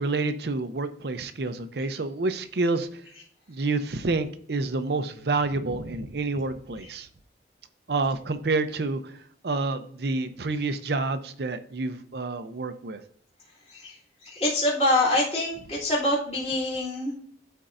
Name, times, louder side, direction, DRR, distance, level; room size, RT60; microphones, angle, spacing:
voice 1, 0.0-2.9 3.5-7.1 7.9-9.1 9.4-13.0, right 3 dB, 60° right, 0.6 m, -28 dB
voice 2, 14.2-17.1, left 1 dB, 35° left, 2.8 m, -25 dB
12.5 x 4.5 x 2.6 m
head